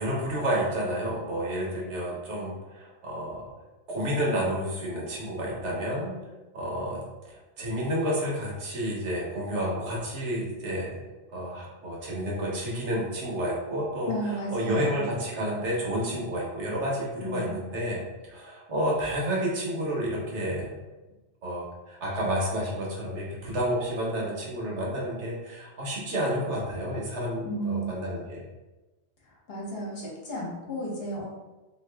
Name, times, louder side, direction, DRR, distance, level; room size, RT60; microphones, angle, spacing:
voice 1, 0.0-3.4 3.9-6.1 6.5-7.0 7.2-10.9 11.3-20.8 21.4-28.4, equal, 65° right, -4 dB, 1.2 m, -30 dB
voice 2, 14.1-15.1 17.2-17.6 27.4-27.9 29.5-31.3, right 1 dB, 55° left, -3 dB, 1.0 m, -33 dB
2.9 x 2.5 x 3.2 m, 1.1 s
omnidirectional pair, 1.3 m